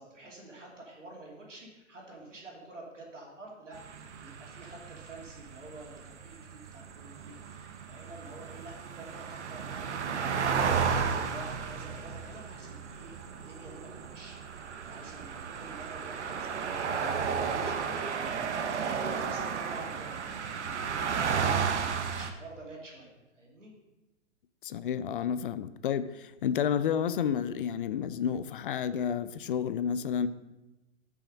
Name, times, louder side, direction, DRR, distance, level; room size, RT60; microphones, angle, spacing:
voice 1, 0.0-14.4 14.9-23.7, right 2 dB, 90° right, -2 dB, 2.8 m, -49 dB
sound 1, 3.7-22.3, right 6 dB, 70° right, 1.0 m, -33 dB
voice 2, 24.6-30.3, left 8 dB, 50° left, 14 dB, 0.5 m, -30 dB
7.4 x 5.7 x 5.2 m, 1.0 s
hypercardioid pair, 130°, 36 cm